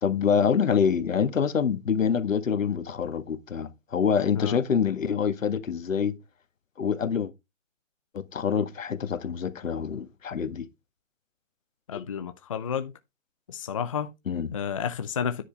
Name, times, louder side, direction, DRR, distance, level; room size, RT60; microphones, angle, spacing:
voice 1, 0.0-6.2 6.8-7.3 8.1-10.7 11.9-12.1 14.3-14.5, left 7 dB, 80° left, 1.7 m, -26 dB
voice 2, 11.9-12.9 13.5-14.1 14.5-15.4, left 7 dB, 25° left, 0.6 m, -31 dB
10.0 x 6.3 x 4.5 m
hypercardioid pair, 165°, 39 cm